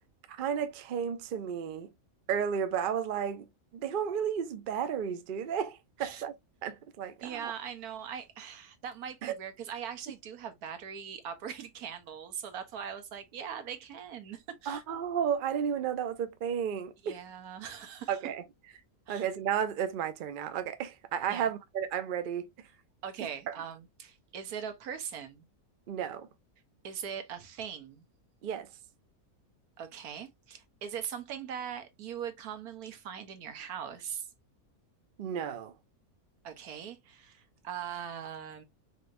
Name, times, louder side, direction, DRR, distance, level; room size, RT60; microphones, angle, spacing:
voice 1, 0.4-1.9 2.3-3.5 3.7-6.3 6.6-7.5 9.2-9.4 14.7-17.2 18.1-18.4 19.1-22.5 25.9-26.3 28.4-28.7 35.2-35.7, right 8 dB, 65° right, 0.5 m, -33 dB
voice 2, 7.2-14.8 17.0-18.2 19.1-19.3 21.3-21.5 23.0-25.4 26.8-28.0 29.8-34.3 36.4-38.6, right 8 dB, 80° right, 1.4 m, -41 dB
4.7 x 3.3 x 2.5 m
omnidirectional pair, 1.6 m